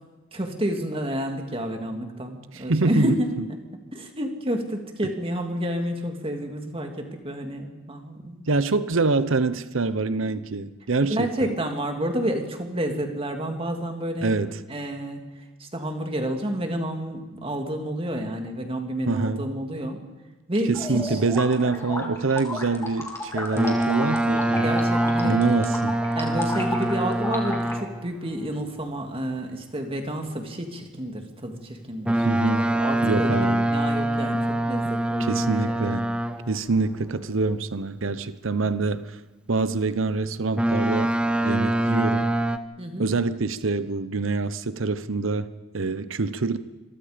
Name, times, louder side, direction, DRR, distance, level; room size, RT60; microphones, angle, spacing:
voice 1, 0.3-3.6 3.9-8.5 11.0-14.4 14.7-20.0 20.5-21.2 24.6-25.6 26.2-32.3 32.6-35.5 42.8-43.1, right 1 dB, 30° right, 4 dB, 2.4 m, -30 dB
voice 2, 2.7-3.1 8.5-11.5 14.2-14.5 19.1-19.4 20.7-24.8 25.2-26.0 32.2-32.7 33.0-33.7 35.2-36.1 36.5-39.1 39.5-41.1 41.4-42.3 43.0-46.6, right 3 dB, 70° right, 14 dB, 0.8 m, -25 dB
sound 1, 20.7-27.7, left 2 dB, 15° left, 3.4 m, -33 dB
Boat Water vehicle, 23.6-28.1 32.1-36.6 40.6-42.6, right 1 dB, 5° right, 0.7 m, -24 dB
27.0 x 23.0 x 5.2 m, 1.2 s
head